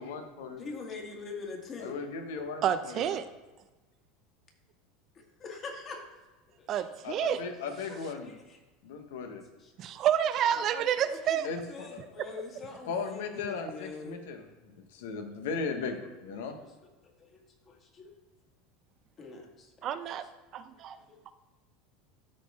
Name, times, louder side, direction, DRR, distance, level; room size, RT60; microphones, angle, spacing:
voice 1, 0.0-0.6 1.8-3.2 7.0-8.3 8.8-9.4 11.4-12.0 12.9-14.4 14.7-16.6, left 5 dB, 85° left, 5 dB, 1.1 m, -37 dB
voice 2, 0.6-1.9 5.1-6.1 6.6-6.7 7.9-8.6 9.6-10.0 10.6-14.2 16.5-16.6 17.2-18.1 19.2-19.7 20.8-21.3, left 4 dB, 35° left, 1 dB, 2.0 m, -44 dB
voice 3, 2.6-3.2 6.7-7.4 9.8-11.4 19.8-20.3 20.5-21.0 21.3-21.4, right 10 dB, 45° right, 12 dB, 0.5 m, -29 dB
12.5 x 4.2 x 3.6 m, 1.2 s
supercardioid pair, 120°, 0 cm